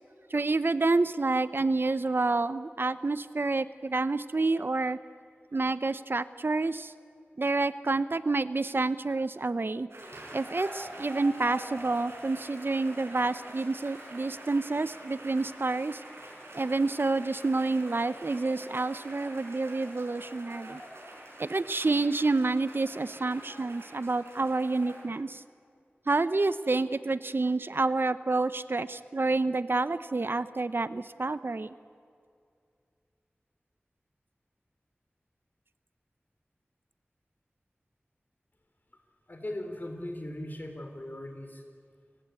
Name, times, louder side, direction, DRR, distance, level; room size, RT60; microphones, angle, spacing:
voice 1, 0.3-5.0 5.5-6.9 7.4-9.9 10.3-16.0 16.5-20.8 21.4-25.4 26.1-31.7, right 3 dB, 60° right, 14 dB, 0.7 m, -28 dB
sound 1, 9.9-25.0, right 1 dB, 80° right, 6.1 m, -45 dB
voice 2, 39.3-41.6, left 1 dB, 45° left, 5 dB, 3.8 m, -38 dB
29.0 x 16.5 x 8.4 m, 2.3 s
wide cardioid pair, 60°, 4 cm